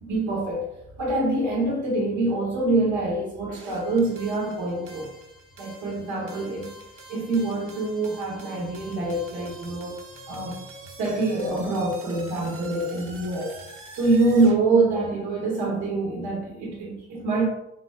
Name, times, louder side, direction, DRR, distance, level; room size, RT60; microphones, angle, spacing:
voice 1, 0.0-0.7 1.0-5.1 5.6-6.7 7.1-10.0 10.3-10.6 11.0-13.6 13.9-17.5, right 2 dB, 80° right, -3 dB, 0.9 m, -25 dB
sound 1, 3.5-14.6, right 2 dB, 45° right, 0.8 m, -46 dB
3.8 x 3.1 x 2.3 m, 0.86 s
cardioid pair, 90°, 30 cm